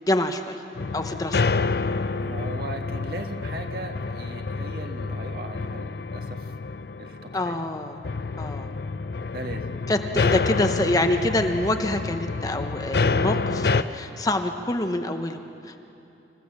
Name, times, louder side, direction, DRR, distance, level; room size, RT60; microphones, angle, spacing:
voice 1, 0.1-0.6 0.9-1.4 7.3-8.0 8.4-8.7 9.9-15.8, left 1 dB, 20° left, 6 dB, 0.8 m, -26 dB
sound 1, 0.8-13.8, left 4 dB, 60° left, 0.5 m, -28 dB
voice 2, 2.2-6.5 7.0-7.6 8.6-9.8 10.1-10.2, right 2 dB, 55° right, 4 dB, 1.5 m, -38 dB
26.5 x 16.0 x 7.3 m, 2.7 s
head